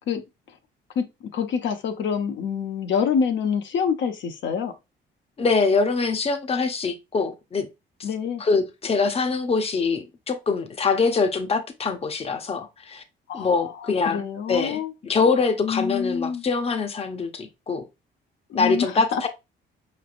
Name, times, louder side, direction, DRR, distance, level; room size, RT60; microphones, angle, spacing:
voice 1, 1.0-4.7 8.0-8.4 13.3-14.9 15.6-16.4 18.5-19.3, left 7 dB, 70° left, 0.7 m, -26 dB
voice 2, 5.4-7.7 8.4-13.0 13.3-17.8 18.5-19.3, left 4 dB, 30° left, 0.7 m, -24 dB
4.9 x 3.3 x 2.4 m
cardioid pair, 90°, 20 cm